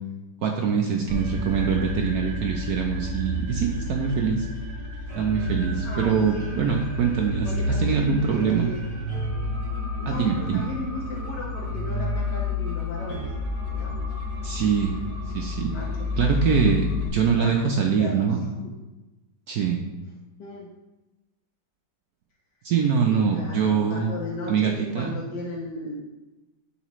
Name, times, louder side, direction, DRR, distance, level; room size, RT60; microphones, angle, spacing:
voice 1, 0.4-4.5 5.2-8.7 10.1-10.6 14.4-15.0 15.3-15.7 16.2-18.4 19.5-19.8 22.6-24.1 24.5-25.1, right 6 dB, 65° right, 1 dB, 1.0 m, -24 dB
sound 1, 1.1-17.1, left 2 dB, 15° right, 1.6 m, -30 dB
voice 2, 5.8-6.8 7.4-8.9 10.0-13.3 13.6-14.0 15.6-16.1 17.4-18.3 20.4-20.7 23.0-26.0, left 2 dB, 70° left, -3 dB, 1.6 m, -36 dB
11.5 x 4.1 x 3.1 m, 1.1 s
omnidirectional pair, 2.0 m